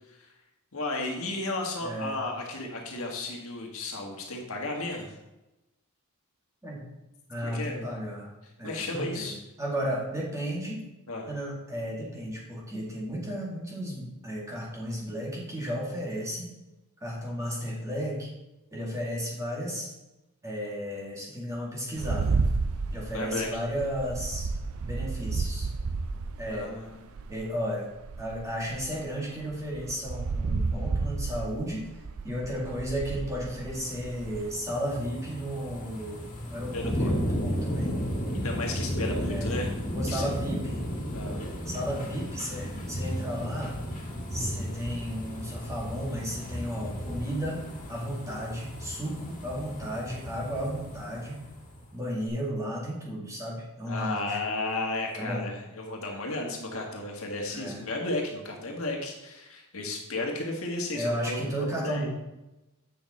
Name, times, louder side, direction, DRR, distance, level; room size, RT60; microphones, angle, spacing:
voice 1, 0.7-5.2 7.4-7.9 8.6-9.3 11.1-11.3 23.1-23.6 26.5-27.0 36.7-37.1 38.3-39.7 40.1-40.3 41.1-41.4 53.9-62.1, left 2 dB, 70° left, 0 dB, 1.6 m, -34 dB
voice 2, 1.8-2.2 6.6-6.8 7.3-8.3 8.6-9.3 9.6-10.8 11.3-16.5 17.0-18.3 18.7-19.9 20.4-22.3 22.9-24.5 24.8-25.7 26.4-26.7 27.3-27.9 28.2-31.8 32.2-37.9 39.3-39.5 39.9-40.8 41.7-43.8 44.3-51.4 51.9-54.4 55.2-55.4 57.5-57.8 60.9-62.1, equal, 15° right, -4 dB, 2.2 m, -34 dB
sound 1, 22.0-27.5 28.0-34.5, right 4 dB, 75° right, 0.5 m, -32 dB
sound 2, 33.7-51.8 52.3-52.4, equal, 35° left, 2.4 m, -34 dB
8.3 x 6.4 x 4.2 m, 0.98 s
head